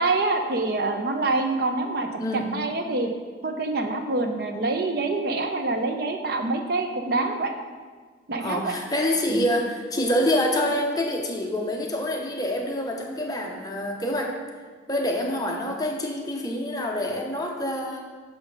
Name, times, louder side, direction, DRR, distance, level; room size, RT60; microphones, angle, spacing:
voice 1, 0.0-3.1 3.4-7.5 8.3-8.7 9.3-9.4, right 3 dB, 55° right, 5 dB, 0.6 m, -26 dB
voice 2, 2.2-2.5 8.4-14.4 14.9-18.0, left 1 dB, 20° left, 1 dB, 0.6 m, -26 dB
6.4 x 4.9 x 5.2 m, 1.5 s
head